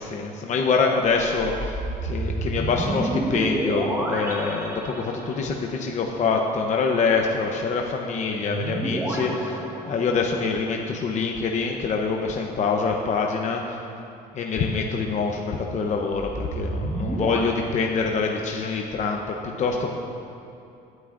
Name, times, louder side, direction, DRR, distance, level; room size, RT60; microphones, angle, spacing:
voice 1, 0.0-13.8 14.3-19.9, left 4 dB, 45° left, 1 dB, 0.8 m, -25 dB
sound 1, 1.2-5.6 8.4-10.5 16.1-17.4, right 2 dB, 15° right, 1.4 m, -30 dB
18.5 x 9.5 x 2.6 m, 2.7 s
cardioid pair, 110°, 17 cm